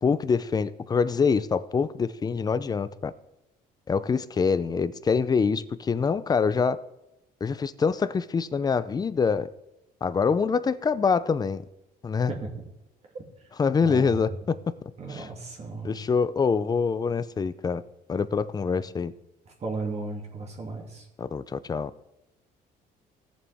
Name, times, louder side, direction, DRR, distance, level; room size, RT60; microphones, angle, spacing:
voice 1, 0.0-3.1 3.9-6.8 7.4-9.5 10.0-11.7 12.0-12.3 13.6-14.6 15.1-15.3 15.8-17.8 18.1-19.1 21.2-21.9, left 5 dB, 25° left, 15 dB, 0.5 m, -25 dB
voice 2, 13.8-14.2 15.0-16.0 19.6-21.1, right 3 dB, 40° right, 0 dB, 2.5 m, -35 dB
17.0 x 7.1 x 3.5 m, 0.90 s
cardioid pair, 110°, 17 cm